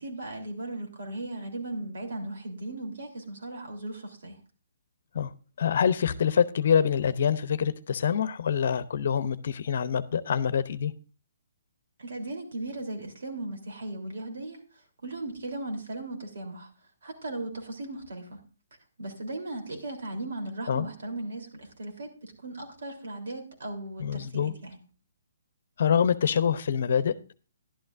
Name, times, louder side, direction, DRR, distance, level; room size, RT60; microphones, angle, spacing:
voice 1, 0.0-4.4 12.0-16.7 17.0-18.4 19.0-24.8, right 2 dB, 70° right, 2 dB, 3.5 m, -37 dB
voice 2, 5.6-10.9 20.7-20.9 24.0-24.5 25.8-27.3, left 7 dB, 60° left, 15 dB, 0.7 m, -25 dB
11.5 x 11.0 x 2.6 m, 0.36 s
hypercardioid pair, 150°, 0 cm